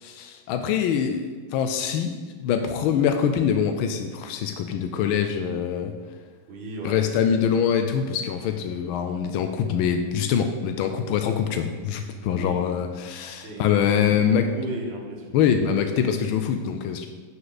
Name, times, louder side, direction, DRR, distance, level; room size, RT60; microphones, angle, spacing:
voice 1, 0.0-5.9 6.8-14.5 15.3-17.1, left 8 dB, 85° left, 6 dB, 1.4 m, -24 dB
voice 2, 6.5-7.6 10.8-10.9 12.3-12.6 13.4-14.0 14.3-15.2, right 1 dB, 70° right, -1 dB, 2.3 m, -35 dB
10.5 x 5.9 x 4.0 m, 1.4 s
omnidirectional pair, 2.2 m